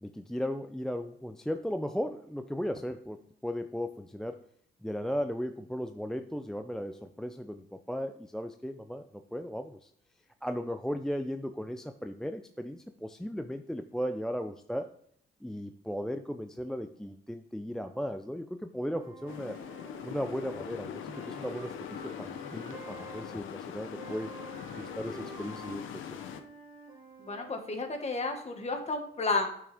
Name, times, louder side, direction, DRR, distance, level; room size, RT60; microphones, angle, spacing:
voice 1, 0.0-4.5 4.8-9.9 10.4-14.9 15.4-19.6 20.0-24.3 24.7-26.1, equal, 5° left, 8 dB, 0.4 m, -36 dB
Wind instrument woodwind instrument, 18.8-23.3 24.0-27.6, right 2 dB, 30° right, 2.5 m, -49 dB
sound 1, 19.3-26.4, left 8 dB, 80° left, 0.8 m, -42 dB
voice 2, 27.2-29.5, left 3 dB, 35° left, 4 dB, 1.6 m, -32 dB
8.9 x 6.2 x 3.5 m, 0.68 s
cardioid pair, 90°, 20 cm